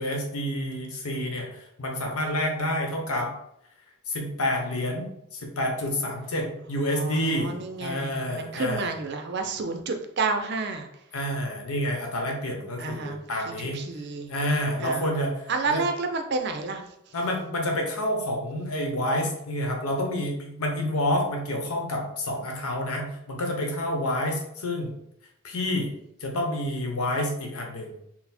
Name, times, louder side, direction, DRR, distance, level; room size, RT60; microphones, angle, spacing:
voice 1, 0.0-3.3 4.1-7.5 7.8-8.9 11.1-13.8 14.3-15.3 15.7-15.8 17.1-24.9 25.4-25.9 26.2-27.9, left 1 dB, 80° left, 1 dB, 0.9 m, -28 dB
voice 2, 6.9-10.9 12.8-13.2 13.5-14.3 14.8-15.1 15.5-17.1, right 3 dB, 50° right, 5 dB, 0.5 m, -30 dB
4.0 x 2.0 x 4.2 m, 0.79 s
head